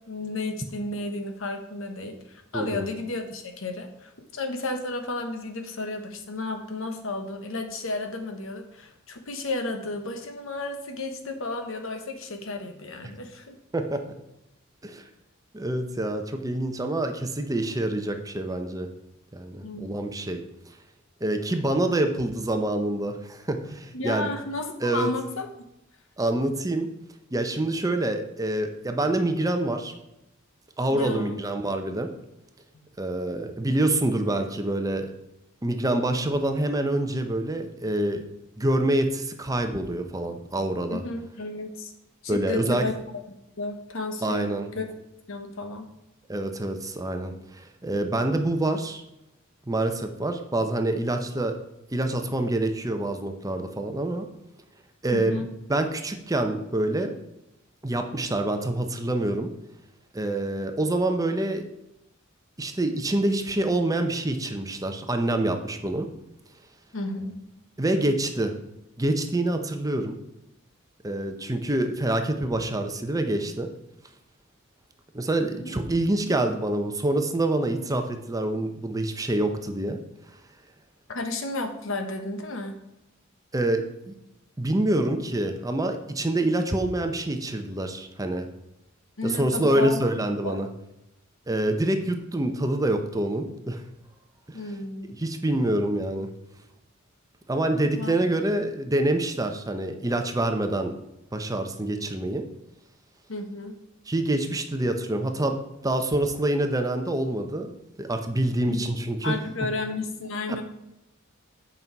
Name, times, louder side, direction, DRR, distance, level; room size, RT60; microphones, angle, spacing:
voice 1, 0.1-13.6 19.6-19.9 23.9-25.5 30.9-31.4 40.9-41.9 42.2-43.2 43.6-44.9 45.3-45.9 55.1-55.5 66.9-67.4 75.6-75.8 81.1-82.8 89.2-90.6 94.5-95.1 97.9-98.1 103.3-103.7 108.7-108.9 109.2-110.6, left 2 dB, 70° left, 6 dB, 1.1 m, -33 dB
voice 2, 2.5-2.9 13.7-14.0 14.8-15.0 15.5-18.9 19.3-20.4 21.2-24.3 24.8-25.1 26.2-26.9 27.3-29.9 30.8-32.1 33.0-35.1 35.6-38.2 38.6-41.0 42.3-42.8 44.2-44.7 46.3-49.0 49.7-51.6 51.9-54.3 55.0-55.4 55.7-57.2 57.8-59.5 60.1-61.6 62.6-66.1 67.8-68.5 69.0-70.2 71.0-73.7 75.1-80.0 83.5-84.1 84.6-88.5 89.2-90.7 91.5-93.8 94.5-94.6 95.2-96.3 97.5-100.9 101.3-102.4 104.1-105.6 105.8-109.3, right 1 dB, 15° right, 6 dB, 0.7 m, -26 dB
8.3 x 5.5 x 4.6 m, 0.86 s
head